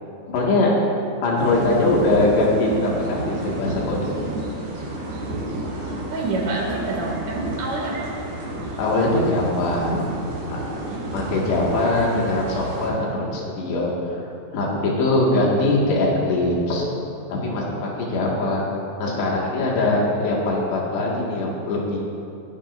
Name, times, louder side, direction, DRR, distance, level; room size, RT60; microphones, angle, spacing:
voice 1, 0.3-0.7 1.2-4.3 5.3-5.4 8.8-10.1 10.5-10.9 11.1-13.9 14.5-16.8 17.3-17.7 18.0-18.7 19.0-22.0, left 2 dB, 65° left, -4 dB, 4.0 m, -22 dB
sound 1, 1.4-12.9, right 1 dB, 90° right, 6.0 m, -32 dB
voice 2, 6.1-8.1 10.9-11.0, right 2 dB, 45° right, -3 dB, 3.3 m, -27 dB
22.0 x 10.5 x 2.7 m, 2.5 s
omnidirectional pair, 5.3 m